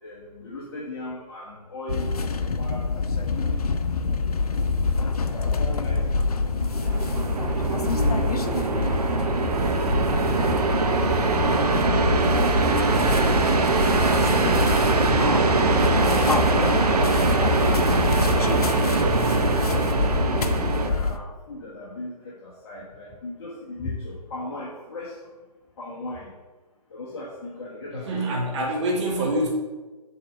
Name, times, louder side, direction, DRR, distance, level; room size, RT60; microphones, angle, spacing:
voice 1, 0.0-2.9 3.3-3.9 5.2-6.3 6.6-6.9 7.9-8.6 10.3-11.7 12.0-12.5 13.0-15.1 16.0-16.7 17.3-19.4 20.2-25.2 25.8-26.3 26.9-28.2 28.6-28.7, left 1 dB, 40° left, -5 dB, 1.4 m, -38 dB
sound 1, 1.9-21.2, left 4 dB, 65° left, 0.7 m, -25 dB
sound 2, 6.5-20.9, right 4 dB, 70° right, 0.8 m, -23 dB
voice 2, 28.0-29.5, right 1 dB, 45° right, -2 dB, 2.1 m, -25 dB
7.5 x 4.2 x 5.3 m, 1.2 s
figure-of-eight pair, 130°, 21 cm